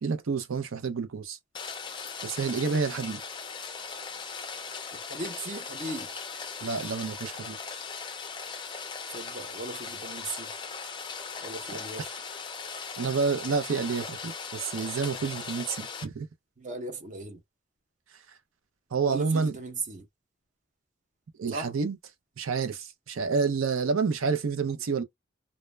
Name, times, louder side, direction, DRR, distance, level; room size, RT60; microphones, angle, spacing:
voice 1, 0.0-1.4 2.2-3.2 6.6-7.6 13.0-16.3 18.9-19.5 21.4-22.0 22.4-25.0, right 5 dB, 90° right, 0.5 m, -29 dB
Rain, 1.5-16.1, left 5 dB, 25° left, 0.4 m, -39 dB
voice 2, 4.9-6.1 9.1-10.5 11.4-12.2 16.6-17.4 19.0-20.1 21.5-21.7, right 2 dB, 40° right, 0.6 m, -37 dB
2.1 x 2.1 x 3.1 m
head